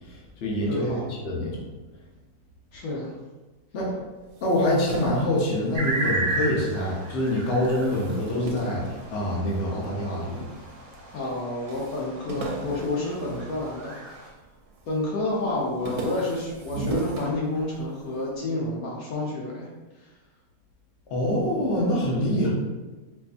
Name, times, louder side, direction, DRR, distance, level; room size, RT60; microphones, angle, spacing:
voice 1, 0.0-1.6 3.7-3.9 4.4-10.5 21.1-22.5, left 1 dB, 50° left, -3 dB, 0.9 m, -25 dB
voice 2, 0.7-1.0 2.7-3.1 11.1-14.0 14.9-19.7 20.0-20.1, left 2 dB, 70° left, -4 dB, 1.1 m, -29 dB
sound 1, 4.3-6.9 7.3-9.8 10.4-11.1 11.3-11.4 11.7-14.3 14.7-15.1 15.4-18.0, right 3 dB, 75° right, 1.1 m, -37 dB
sound 2, 5.7-14.3, right 2 dB, 55° right, 1.1 m, -34 dB
4.4 x 2.6 x 2.5 m, 1.2 s
omnidirectional pair, 1.7 m